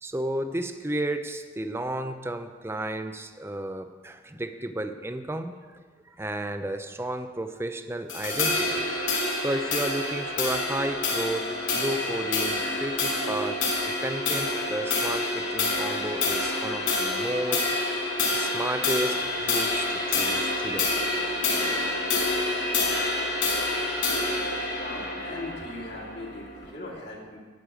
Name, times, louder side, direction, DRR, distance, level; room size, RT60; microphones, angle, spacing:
voice 1, 0.0-5.6 6.2-8.9 9.4-17.6 18.3-20.9 22.5-22.6, right 1 dB, 15° right, 8 dB, 0.6 m, -32 dB
sound 1, 8.1-26.7, left 2 dB, 90° left, 2.4 m, -27 dB
voice 2, 24.7-27.4, left 2 dB, 60° left, -4 dB, 2.6 m, -39 dB
11.0 x 6.7 x 8.9 m, 1.5 s
head